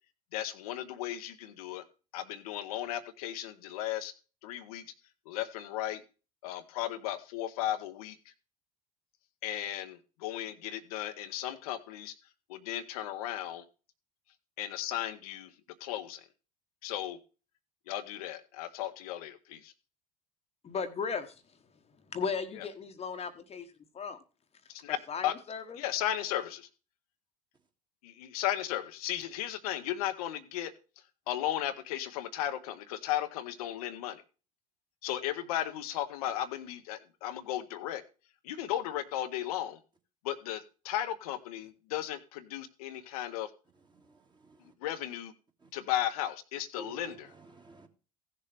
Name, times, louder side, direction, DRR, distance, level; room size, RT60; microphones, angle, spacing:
voice 1, 0.3-1.8 2.1-4.1 4.4-4.8 5.3-6.0 6.4-8.2 9.4-12.1 12.5-13.6 14.6-15.5 15.8-16.2 16.8-17.2 17.9-19.7 22.6-22.7 24.7-25.0 25.2-25.3 25.8-26.7 28.0-30.7 31.3-34.2 35.0-38.0 38.4-39.8 40.2-43.5 44.8-45.3 45.7-47.3, left 12 dB, 65° left, 0.8 m, -35 dB
voice 2, 20.6-21.3 22.1-23.7 23.9-24.2 25.1-25.8, left 5 dB, 30° left, 1.1 m, -36 dB
voice 3, 46.8-47.9, right 2 dB, 20° right, 2.1 m, -50 dB
16.0 x 6.7 x 3.4 m
figure-of-eight pair, 65°, 20 cm